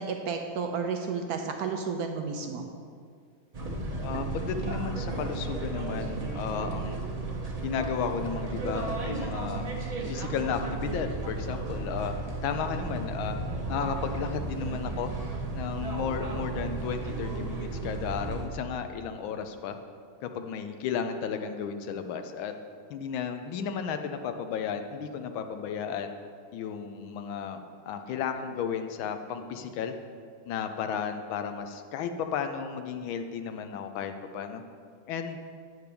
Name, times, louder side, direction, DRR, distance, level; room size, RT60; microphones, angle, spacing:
voice 1, 0.0-2.7, right 5 dB, 75° right, 4 dB, 0.8 m, -32 dB
sound 1, 3.5-18.4, right 3 dB, 45° right, 0.5 m, -34 dB
voice 2, 4.0-7.0 7.6-9.7 10.1-12.2 12.4-13.4 13.7-15.1 15.5-19.8 20.2-22.5 22.9-26.1 26.5-27.6 27.9-30.0 30.5-34.6 35.1-35.4, left 7 dB, 85° left, 7 dB, 1.4 m, -33 dB
8.7 x 4.6 x 6.7 m, 2.1 s
omnidirectional pair, 2.2 m